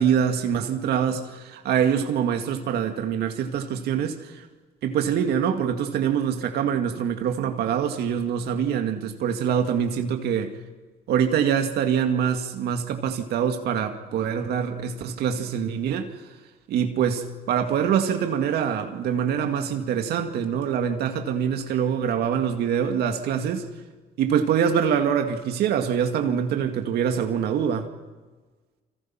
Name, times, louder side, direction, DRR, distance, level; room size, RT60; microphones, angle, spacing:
voice 1, 0.0-4.5 4.8-10.5 11.1-16.1 16.7-23.6 24.2-27.9, right 8 dB, 75° right, 5 dB, 2.2 m, -24 dB
29.5 x 25.5 x 5.9 m, 1.3 s
cardioid pair, 110°, 17 cm